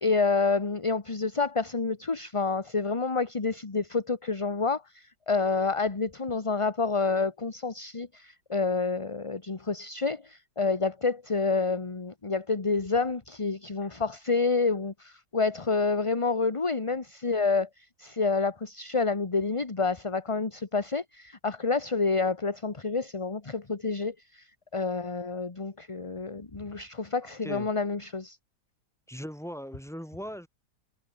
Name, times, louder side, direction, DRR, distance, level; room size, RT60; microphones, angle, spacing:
voice 1, 0.0-24.5 24.7-28.4, left 4 dB, 20° left, 1.1 m, -28 dB
voice 2, 29.1-30.5, equal, ahead, 5.4 m, -39 dB
omnidirectional pair, 1.8 m